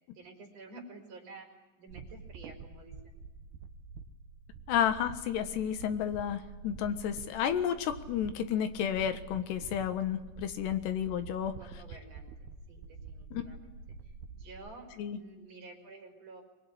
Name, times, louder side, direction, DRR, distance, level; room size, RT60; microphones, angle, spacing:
voice 1, 0.1-1.5 1.8-3.1 10.7-13.7 14.0-16.4, right 3 dB, 35° right, 3 dB, 5.6 m, -51 dB
sound 1, 1.9-14.7, right 4 dB, 70° right, 3.2 m, -48 dB
voice 2, 4.7-11.5 13.3-13.4 15.0-15.2, left 9 dB, 75° left, 10 dB, 3.5 m, -31 dB
25.0 x 21.0 x 9.9 m, 1.2 s
omnidirectional pair, 5.1 m